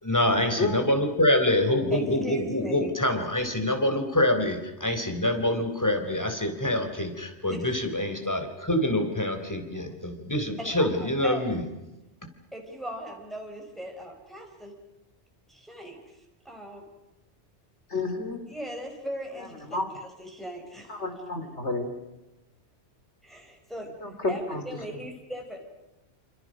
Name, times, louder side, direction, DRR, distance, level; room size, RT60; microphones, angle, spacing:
voice 1, 0.0-11.6, left 1 dB, 15° left, 6 dB, 3.8 m, -26 dB
voice 2, 0.6-0.9 17.9-18.4 19.7-19.9 20.9-21.9 24.0-24.1 24.5-24.6, left 3 dB, 90° left, 7 dB, 3.9 m, -30 dB
voice 3, 1.9-3.0 7.5-7.7 10.6-11.4 12.5-14.7 15.5-16.2 16.4-16.8 17.9-18.0 18.5-20.9 23.2-23.9 24.3-25.6, equal, ahead, 1 dB, 4.9 m, -39 dB
28.0 x 27.5 x 6.4 m, 0.97 s
omnidirectional pair, 1.1 m